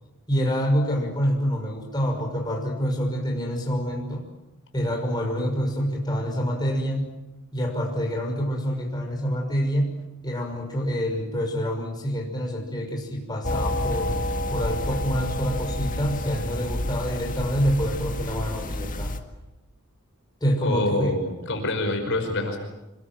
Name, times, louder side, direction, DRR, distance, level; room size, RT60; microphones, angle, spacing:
voice 1, 0.3-4.2 4.7-7.1 7.5-9.9 10.2-14.2 14.5-19.1 20.4-21.1, equal, 20° left, 0 dB, 6.0 m, -26 dB
sound 1, 13.4-19.2, left 1 dB, 35° left, 2.0 m, -29 dB
voice 2, 20.6-22.6, left 1 dB, 55° left, 4 dB, 5.2 m, -26 dB
26.5 x 22.0 x 9.2 m, 0.99 s
head